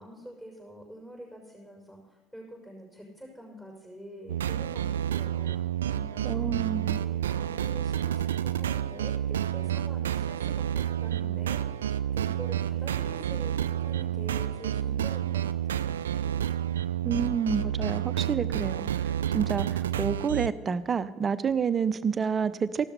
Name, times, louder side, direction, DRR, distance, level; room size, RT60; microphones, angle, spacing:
voice 1, 0.0-6.5 6.8-11.8 12.1-16.6, equal, 10° left, -2 dB, 6.0 m, -46 dB
sound 1, 4.3-20.5, right 10 dB, 75° right, 0.4 m, -29 dB
voice 2, 6.2-7.0 17.0-22.9, right 6 dB, 30° right, 15 dB, 0.7 m, -29 dB
15.0 x 12.5 x 5.6 m, 1.2 s
figure-of-eight pair, 60°, 0 cm